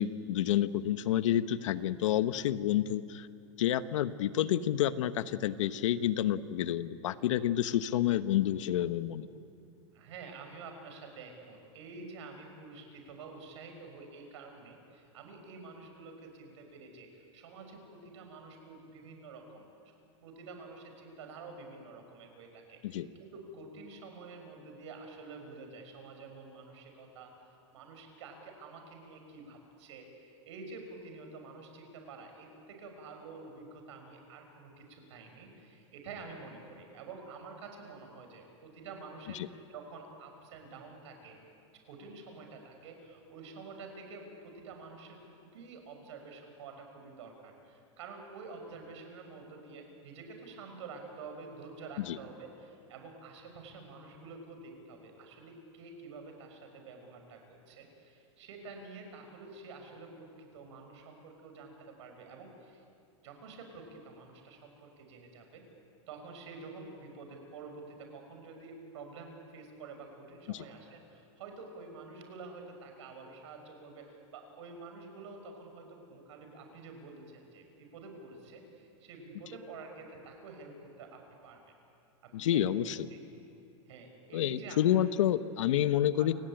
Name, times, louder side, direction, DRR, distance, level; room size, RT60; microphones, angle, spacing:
voice 1, 0.0-3.3 3.6-9.4 22.8-23.1 39.3-39.5 52.1-52.2 70.5-70.6 82.3-83.1 84.3-86.3, left 11 dB, 75° left, 13 dB, 1.1 m, -29 dB
voice 2, 9.9-19.7 20.2-27.3 27.7-39.4 39.7-41.4 41.9-62.8 63.2-65.6 66.1-81.6 82.2-82.6 83.1-83.2 83.9-84.8 86.2-86.3, right 4 dB, 65° right, 4 dB, 6.2 m, -48 dB
28.5 x 18.5 x 9.0 m, 2.6 s
supercardioid pair, 160°, 16 cm